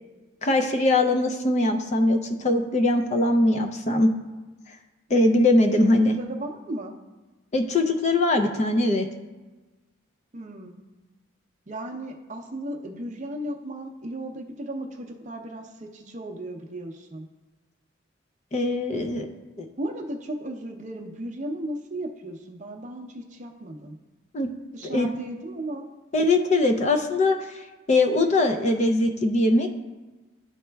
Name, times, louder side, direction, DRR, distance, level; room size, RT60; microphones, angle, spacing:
voice 1, 0.4-4.1 4.7-4.8 5.1-6.2 7.5-9.1 18.5-19.2 19.6-19.7 24.3-24.5 24.9-25.1 26.1-27.6 27.9-29.7, left 2 dB, 35° left, 5 dB, 0.4 m, -21 dB
voice 2, 6.1-7.0 10.3-10.8 11.7-17.3 19.8-24.0 24.7-25.9, right 1 dB, 35° right, 2 dB, 0.6 m, -35 dB
11.5 x 4.1 x 2.3 m, 1.2 s
head